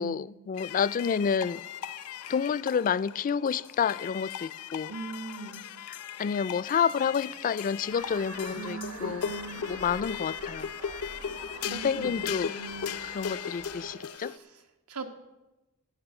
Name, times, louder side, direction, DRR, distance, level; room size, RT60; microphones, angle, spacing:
voice 1, 0.0-1.6 2.3-4.9 5.9-9.3 9.6-10.7 11.7-12.5 13.1-14.3, left 7 dB, 40° left, 0.3 m, -29 dB
sound 1, 0.6-14.4, left 8 dB, 90° left, 0.6 m, -38 dB
voice 2, 4.9-5.6 8.5-9.8 11.6-12.9 14.1-14.6 14.9-15.1, right 4 dB, 85° right, 1.5 m, -41 dB
sound 2, 6.3-14.2, right 3 dB, 35° right, 0.8 m, -54 dB
sound 3, 7.9-13.9, right 6 dB, 65° right, 0.6 m, -48 dB
15.5 x 5.4 x 9.0 m
head